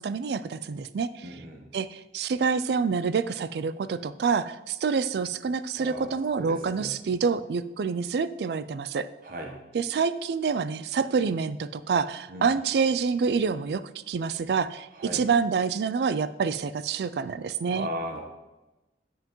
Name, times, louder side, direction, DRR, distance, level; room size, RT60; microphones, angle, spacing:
voice 1, 0.0-1.3 1.7-9.1 9.7-13.8 14.1-14.9 15.1-17.9, right 5 dB, 65° right, 15 dB, 0.3 m, -27 dB
voice 2, 1.2-1.7 5.7-7.0 9.2-9.6 12.3-12.5 14.9-15.2 17.7-18.2, equal, 50° right, 2 dB, 1.0 m, -37 dB
7.6 x 7.4 x 3.0 m, 1.0 s
head